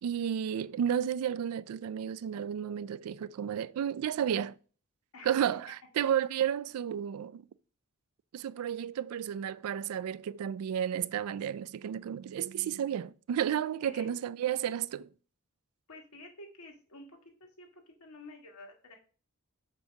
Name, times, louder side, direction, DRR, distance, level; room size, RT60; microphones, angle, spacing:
voice 1, 0.0-4.5 5.2-7.4 8.3-15.1, right 9 dB, 80° right, 0.3 m, -32 dB
voice 2, 15.9-17.2 17.6-18.9, left 2 dB, 80° left, 1.5 m, -50 dB
6.7 x 2.9 x 5.8 m
head